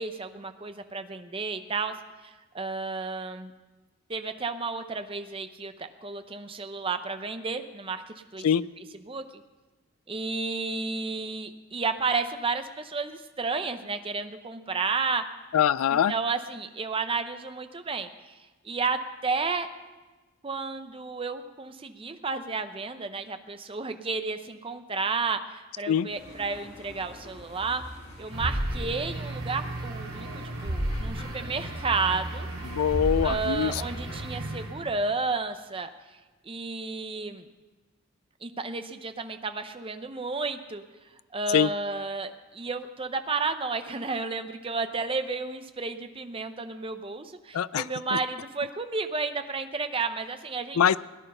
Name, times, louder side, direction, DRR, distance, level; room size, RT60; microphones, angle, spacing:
voice 1, 0.0-1.9 2.2-3.5 4.1-8.5 9.1-9.4 10.1-15.2 15.9-18.3 18.6-19.7 20.4-27.8 28.2-32.8 33.2-35.9 36.5-37.4 38.4-40.8 41.3-50.8, right 4 dB, 25° right, 9 dB, 0.7 m, -32 dB
voice 2, 15.5-16.1 25.9-26.1 32.6-33.8 41.5-41.7 47.5-48.2 50.8-51.0, left 8 dB, 80° left, 19 dB, 0.4 m, -24 dB
sound 1, 26.1-34.7, left 1 dB, 55° left, 4.3 m, -45 dB
sound 2, 28.3-35.0, right 1 dB, 85° right, 2.7 m, -33 dB
18.0 x 10.0 x 5.5 m, 1.2 s
head